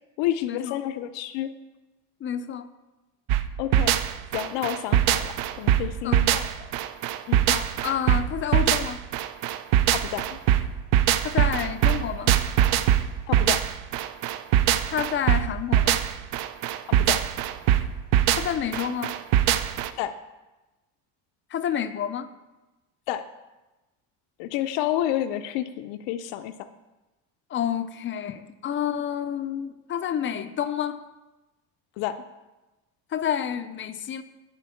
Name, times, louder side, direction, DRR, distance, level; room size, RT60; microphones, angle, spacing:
voice 1, 0.2-1.5 3.6-3.9 4.3-6.5 7.3-7.4 9.9-10.4 13.3-13.6 17.0-17.2 20.0-20.1 23.1-23.2 24.4-26.5 32.0-32.2, left 12 dB, 75° left, 10 dB, 0.6 m, -29 dB
voice 2, 2.2-2.7 6.0-6.4 7.5-9.0 11.2-12.3 14.9-16.0 18.3-19.2 21.5-22.3 27.5-31.0 33.1-34.2, left 9 dB, 30° left, 11 dB, 0.4 m, -29 dB
sound 1, 3.3-19.9, right 11 dB, 60° right, 0.6 m, -22 dB
10.5 x 4.5 x 7.0 m, 1.1 s
cardioid pair, 140°, 45 cm